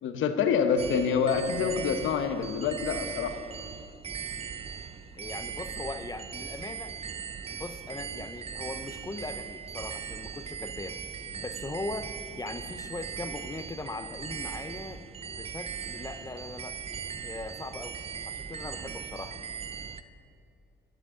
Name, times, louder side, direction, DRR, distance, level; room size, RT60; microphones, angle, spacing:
voice 1, 0.0-3.4, left 6 dB, 80° left, 8 dB, 0.9 m, -27 dB
sound 1, 0.8-20.0, right 7 dB, 30° right, 0.5 m, -39 dB
voice 2, 5.1-6.9 7.5-11.0 11.3-15.0 15.4-16.8 17.2-18.0 18.3-19.4, left 2 dB, 20° left, 9 dB, 0.7 m, -39 dB
16.0 x 10.0 x 3.7 m, 2.5 s
cardioid pair, 90°, 20 cm